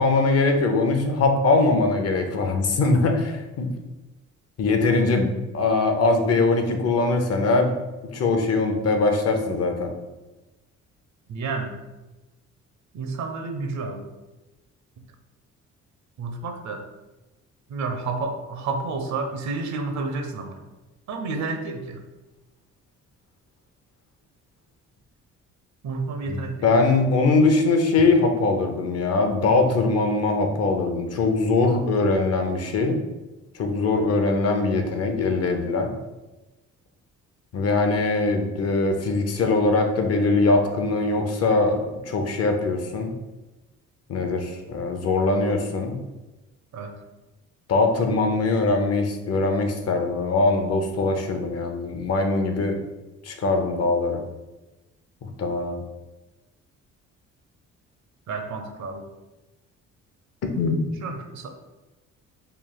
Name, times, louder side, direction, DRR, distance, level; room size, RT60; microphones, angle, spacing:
voice 1, 0.0-3.7 4.6-7.7 8.1-9.9 26.3-33.0 33.5-35.9 37.5-43.1 44.1-46.0 47.7-52.8 53.2-54.2 55.2-55.8 60.5-61.0, left 3 dB, 55° left, 4 dB, 0.7 m, -22 dB
voice 2, 11.3-11.7 12.9-14.1 16.2-16.8 17.7-20.6 21.1-22.0 25.8-26.7 46.7-46.9 58.3-59.1 61.0-61.5, right 3 dB, 70° right, 5 dB, 0.7 m, -30 dB
3.3 x 2.3 x 3.9 m, 1.1 s
cardioid pair, 90°, 30 cm